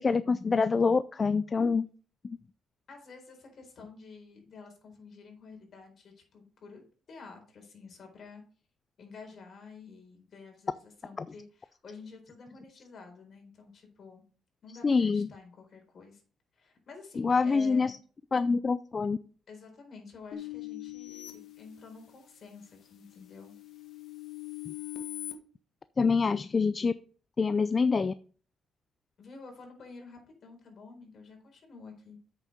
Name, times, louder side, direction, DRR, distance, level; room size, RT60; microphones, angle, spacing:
voice 1, 0.0-1.9 2.2-2.4 14.8-15.3 17.2-18.0 18.3-19.2 24.7-24.8 26.0-26.9 27.4-28.1, left 4 dB, 35° left, 15 dB, 0.4 m, -26 dB
voice 2, 2.9-6.8 7.1-8.4 9.0-14.2 14.6-16.2 16.5-18.0 19.5-23.5 29.2-32.2, left 4 dB, 50° left, 3 dB, 4.2 m, -50 dB
sound 1, 20.3-22.3 22.8-25.3, left 14 dB, 65° left, 1.6 m, -42 dB
8.1 x 6.8 x 5.1 m, 0.41 s
cardioid pair, 90°, 0 cm